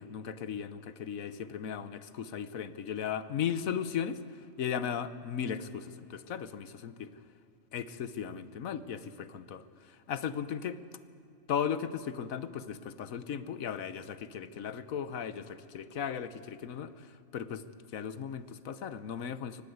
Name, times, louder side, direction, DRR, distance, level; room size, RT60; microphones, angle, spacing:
voice 1, 0.0-4.2 4.6-7.1 7.7-10.8 11.5-17.1 17.3-17.6 17.9-19.6, left 8 dB, 85° left, 14 dB, 1.4 m, -36 dB
24.0 x 19.0 x 8.0 m, 2.6 s
omnidirectional pair, 1.4 m